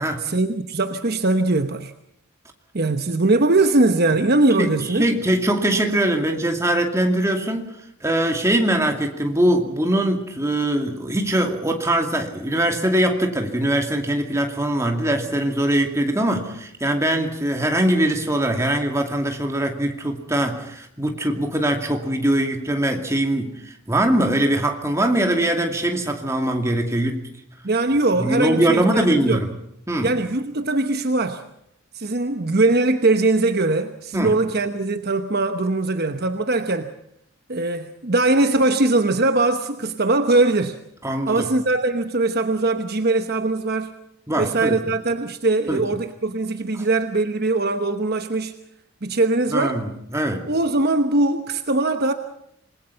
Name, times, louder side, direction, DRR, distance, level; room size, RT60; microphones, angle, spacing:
voice 1, 0.2-1.9 2.7-5.1 27.6-29.4 30.0-31.4 31.9-36.9 37.5-40.8 41.3-43.9 44.4-48.5 49.0-49.8 50.5-52.1, right 2 dB, 45° right, 8 dB, 1.0 m, -21 dB
voice 2, 4.6-27.3 28.1-29.5 29.9-30.1 34.1-34.4 41.0-41.5 44.3-44.8 45.7-45.8 46.7-46.8 49.5-50.5, right 1 dB, 15° right, 3 dB, 2.5 m, -22 dB
27.0 x 20.5 x 5.7 m, 0.73 s
head